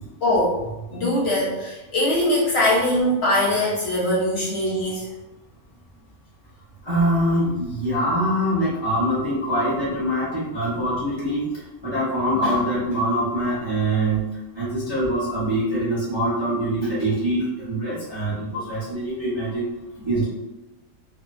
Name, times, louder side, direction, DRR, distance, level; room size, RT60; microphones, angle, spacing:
voice 1, 0.2-5.1, left 1 dB, 60° left, -6 dB, 0.7 m, -22 dB
voice 2, 6.8-14.2 14.5-19.7 20.0-20.3, right 1 dB, 35° right, -9 dB, 0.4 m, -24 dB
2.6 x 2.0 x 2.3 m, 1.0 s
omnidirectional pair, 1.5 m